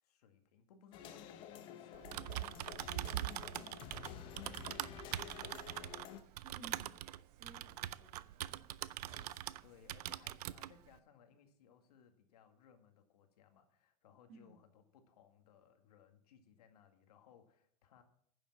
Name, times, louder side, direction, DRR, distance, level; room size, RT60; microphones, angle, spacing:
voice 1, 0.0-3.3 3.6-5.9 9.6-18.0, left 7 dB, 90° left, 6 dB, 2.0 m, -65 dB
sound 1, 0.9-6.2, left 9 dB, 25° left, 0.8 m, -50 dB
Typing, 1.9-9.6 9.9-10.7, right 14 dB, 90° right, 0.5 m, -43 dB
voice 2, 6.4-9.0 14.3-14.6, right 3 dB, 40° right, 1 dB, 3.2 m, -59 dB
sound 2, 7.3-9.9, right 5 dB, 65° right, 2.9 m, -67 dB
10.5 x 7.4 x 7.2 m, 0.67 s
supercardioid pair, 180°, 19 cm